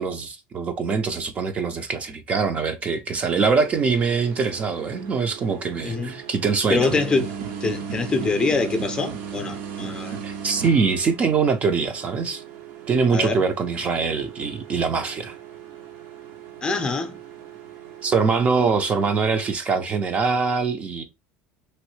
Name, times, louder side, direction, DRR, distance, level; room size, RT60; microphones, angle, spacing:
voice 1, 0.0-6.9 10.2-12.4 12.9-15.4 18.0-21.0, right 5 dB, 30° right, 0.5 m, -23 dB
sound 1, 3.2-19.6, right 7 dB, 65° right, 0.8 m, -37 dB
voice 2, 6.7-7.3 7.6-10.2 13.1-13.4 16.6-17.1, left 4 dB, 20° left, 0.6 m, -24 dB
3.0 x 2.7 x 3.1 m
supercardioid pair, 120°, 4 cm